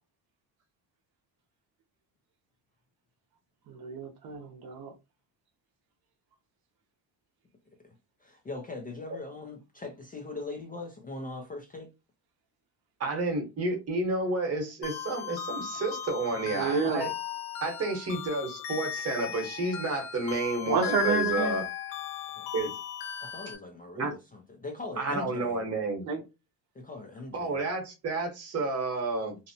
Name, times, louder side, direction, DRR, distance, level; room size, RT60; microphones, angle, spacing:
voice 1, 3.7-4.9 16.5-17.1 20.7-21.6 26.0-26.2, right 5 dB, 60° right, 0.7 m, -29 dB
voice 2, 8.2-11.9 22.4-22.5 23.2-25.6 26.7-27.6, left 3 dB, 20° left, 0.4 m, -41 dB
voice 3, 13.0-17.1 17.6-21.6 22.5-22.7 24.0-24.1 25.0-26.1 27.3-29.4, right 2 dB, 35° right, 1.0 m, -30 dB
sound 1, 14.8-23.6, left 10 dB, 85° left, 0.7 m, -36 dB
2.7 x 2.0 x 2.6 m
cardioid pair, 135°, 43 cm